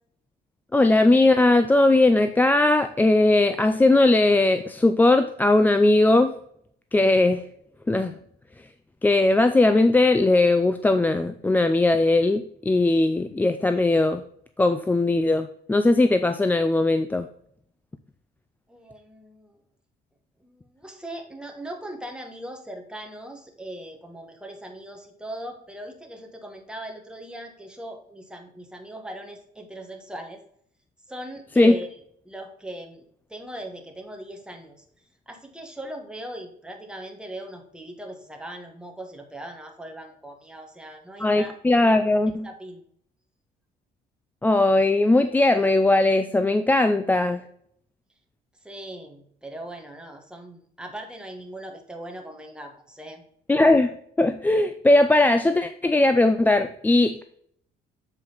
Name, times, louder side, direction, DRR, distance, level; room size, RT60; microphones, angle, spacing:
voice 1, 0.7-6.3 6.9-7.4 7.9-8.1 9.0-14.2 14.6-17.3 31.6-31.8 41.2-42.5 44.4-47.4 53.5-57.2, left 2 dB, 10° left, 9 dB, 0.4 m, -19 dB
voice 2, 18.7-19.6 20.4-30.4 31.1-32.0 32.2-33.0 33.3-34.8 35.3-41.5 42.4-42.8 48.6-53.2, right 1 dB, 5° right, 3 dB, 1.4 m, -39 dB
7.6 x 4.7 x 3.9 m, 0.66 s
cardioid pair, 110°, 17 cm